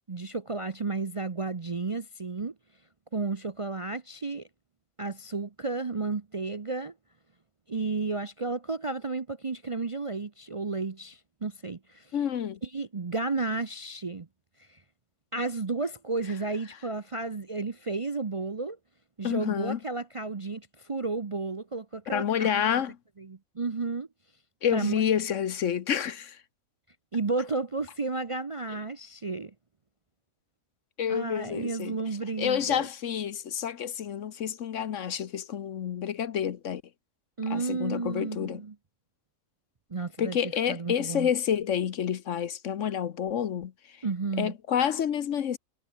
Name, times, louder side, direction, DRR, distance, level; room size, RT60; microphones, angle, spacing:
voice 1, 0.1-2.5 3.1-4.5 5.0-6.9 7.7-12.1 12.6-14.3 14.7-14.8 15.3-18.8 19.2-22.6 23.3-24.1 24.7-25.0 27.1-29.5 31.1-32.9 37.4-38.7 39.9-40.4 40.7-41.3 44.0-44.5, right 3 dB, 30° right, 0.6 m, -32 dB
voice 2, 12.1-12.6 19.2-19.8 22.1-23.0 24.6-26.4 31.0-36.8 37.5-38.6 40.2-44.0 44.4-45.6, left 8 dB, 65° left, 1.2 m, -29 dB
omnidirectional pair, 1.5 m